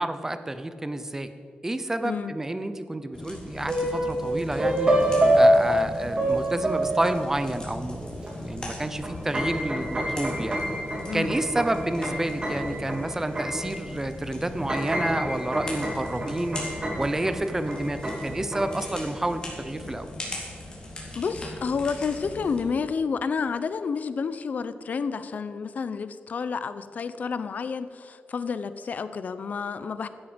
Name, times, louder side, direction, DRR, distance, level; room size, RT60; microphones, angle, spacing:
voice 1, 0.0-1.3 1.6-10.6 11.1-20.1, right 1 dB, 15° right, 10 dB, 0.9 m, -30 dB
voice 2, 2.0-2.3 11.1-11.3 21.1-30.1, left 5 dB, 55° left, 13 dB, 0.8 m, -30 dB
sound 1, 3.1-22.6, left 2 dB, 25° left, 3.7 m, -40 dB
sound 2, 3.7-4.2 4.6-7.5 8.3-8.4 8.7-14.0 14.4-18.9, right 1 dB, 30° right, 3.2 m, -26 dB
16.5 x 13.0 x 5.2 m, 2.5 s
wide cardioid pair, 160°, 3 cm